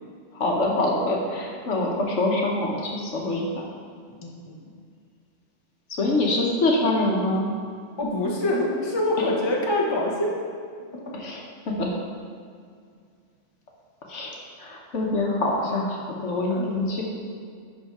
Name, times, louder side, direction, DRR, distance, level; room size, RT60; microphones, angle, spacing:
voice 1, 0.3-3.6 5.9-7.5 11.1-11.4 11.7-11.9 14.1-17.0, left 2 dB, 70° left, -1 dB, 1.4 m, -25 dB
voice 2, 4.1-4.8 8.0-10.3 16.5-16.7, left 1 dB, 20° left, -2 dB, 1.0 m, -25 dB
11.0 x 4.0 x 4.7 m, 2.2 s
omnidirectional pair, 1.3 m